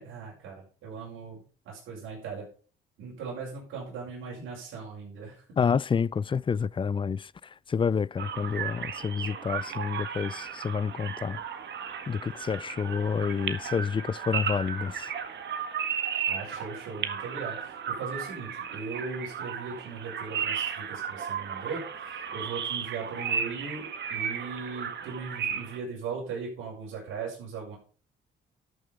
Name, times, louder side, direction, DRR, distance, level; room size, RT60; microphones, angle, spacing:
voice 1, 0.0-2.5 3.0-5.7 16.2-27.8, right 5 dB, 85° right, 5.8 m, -39 dB
voice 2, 5.6-11.4 12.1-15.1, left 6 dB, 25° left, 0.4 m, -29 dB
sound 1, 8.2-25.8, right 7 dB, 65° right, 1.7 m, -34 dB
12.5 x 6.8 x 5.1 m
cardioid pair, 90°, 20 cm